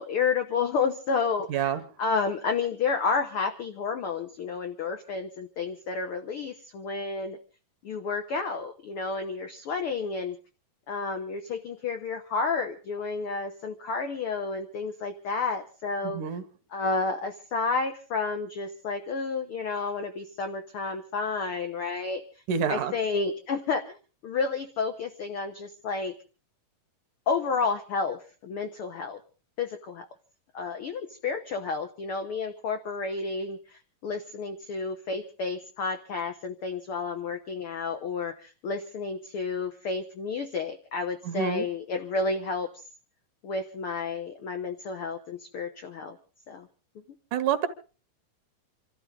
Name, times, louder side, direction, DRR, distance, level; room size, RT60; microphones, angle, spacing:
voice 1, 0.0-1.7 2.0-7.4 7.8-10.4 10.9-16.2 16.7-22.2 22.7-24.0 24.2-26.2 27.3-29.2 29.6-30.1 30.5-42.7 43.4-46.2 46.5-46.7, left 4 dB, 75° left, 7 dB, 1.2 m, -31 dB
voice 2, 1.5-1.8 16.0-16.4 22.5-22.9 41.3-41.7 47.3-47.7, right 8 dB, 70° right, 10 dB, 2.4 m, -27 dB
27.5 x 13.0 x 3.8 m, 0.37 s
omnidirectional pair, 3.9 m